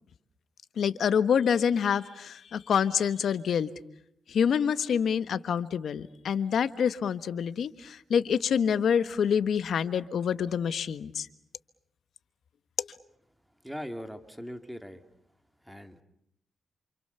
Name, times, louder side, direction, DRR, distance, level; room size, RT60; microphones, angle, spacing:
voice 1, 0.8-3.7 4.3-11.3 12.8-12.9, left 7 dB, 70° left, 13 dB, 1.3 m, -27 dB
voice 2, 13.6-15.1 15.6-16.0, equal, ahead, 7 dB, 2.5 m, -40 dB
28.5 x 27.0 x 6.9 m, 0.74 s
cardioid pair, 90°, 0 cm